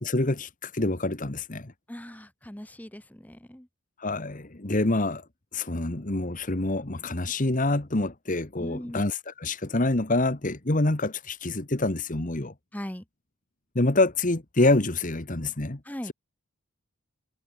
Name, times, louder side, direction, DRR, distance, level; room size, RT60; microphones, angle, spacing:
voice 1, 0.0-1.7 4.0-5.2 5.5-12.5 13.7-15.8, left 2 dB, 40° left, 1.4 m, -26 dB
voice 2, 1.9-3.7 8.6-9.0 12.7-13.0 15.8-16.1, equal, 5° left, 1.0 m, -39 dB
head